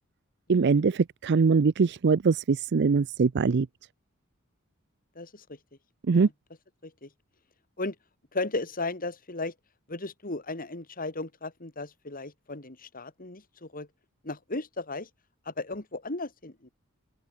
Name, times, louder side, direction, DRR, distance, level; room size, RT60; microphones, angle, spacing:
voice 1, 0.5-3.7 6.1-6.3, right 5 dB, 55° right, 0.5 m, -22 dB
voice 2, 5.1-5.5 6.1-6.3 6.8-7.1 7.8-7.9 8.3-9.5 9.9-13.9 14.2-15.1 15.4-16.7, left 2 dB, 45° left, 3.4 m, -35 dB
open air
head